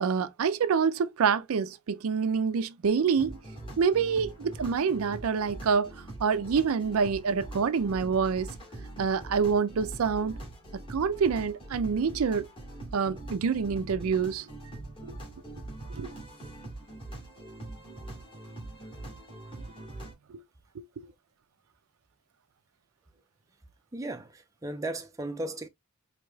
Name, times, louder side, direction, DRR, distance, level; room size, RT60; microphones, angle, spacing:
voice 1, 0.0-3.3 3.8-5.9 6.2-8.5 9.0-10.4 10.9-12.5 12.9-14.5 15.0-15.1 15.9-16.1 20.3-20.4 20.8-20.9, right 6 dB, 75° right, 0.4 m, -26 dB
sound 1, 3.1-20.1, right 2 dB, 25° left, 1.8 m, -43 dB
voice 2, 23.9-25.7, right 1 dB, 15° right, 0.4 m, -36 dB
4.7 x 2.8 x 2.2 m
head